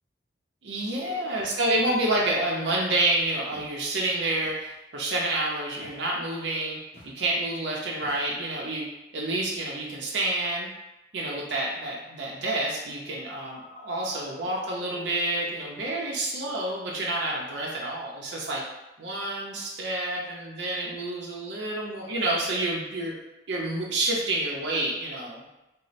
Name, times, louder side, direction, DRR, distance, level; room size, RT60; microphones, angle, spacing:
voice 1, 0.6-6.8 7.0-8.8 9.1-10.7 11.1-18.6 19.0-23.1 23.5-25.4, right 1 dB, 70° right, -3 dB, 0.6 m, -28 dB
Walk footsteps, 3.5-3.8 4.4-4.8 5.8-6.1 6.9-7.2 8.0-8.5, left 1 dB, 35° left, 0.9 m, -50 dB
Telephone, 13.2-16.2 16.5-17.1 17.5-17.8, left 2 dB, ahead, 0.6 m, -52 dB
3.0 x 2.0 x 4.0 m, 0.98 s
head